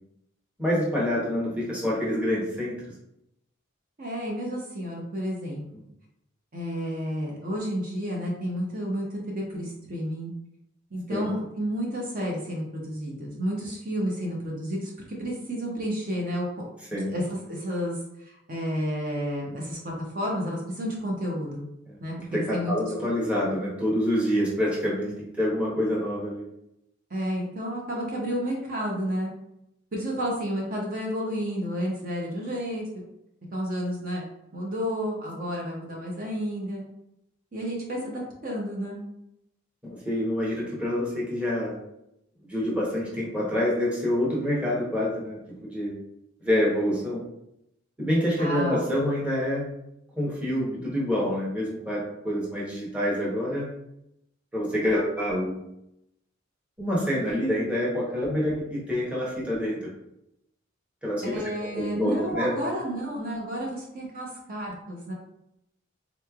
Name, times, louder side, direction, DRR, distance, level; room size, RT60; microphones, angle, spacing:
voice 1, 0.6-2.8 11.1-11.3 16.9-17.2 21.9-22.0 22.3-26.5 39.8-41.8 42.4-46.0 46.4-47.2 48.0-49.7 50.2-53.7 54.5-55.6 56.8-59.9 61.0-62.6, equal, 5° right, -6 dB, 0.9 m, -27 dB
voice 2, 4.0-5.6 6.5-10.3 10.9-16.4 17.0-21.7 22.0-23.1 27.1-29.3 29.9-32.8 33.5-34.2 34.5-36.8 37.5-39.0 48.4-48.8 61.2-65.1, equal, 45° right, -2 dB, 0.7 m, -31 dB
3.7 x 3.1 x 2.3 m, 0.82 s
head